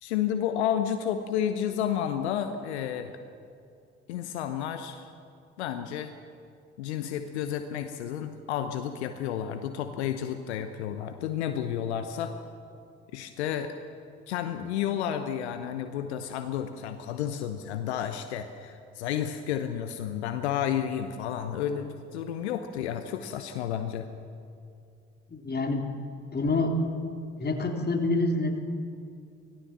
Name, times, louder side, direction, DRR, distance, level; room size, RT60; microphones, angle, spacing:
voice 1, 0.0-3.2 4.1-5.1 5.6-6.1 6.8-12.3 13.1-13.7 14.3-24.1, left 9 dB, 75° left, 8 dB, 1.0 m, -31 dB
voice 2, 25.3-25.9 26.2-26.7 27.4-28.6, left 2 dB, 30° left, 3 dB, 3.3 m, -27 dB
25.0 x 17.0 x 7.4 m, 2.4 s
figure-of-eight pair, 50°, 33 cm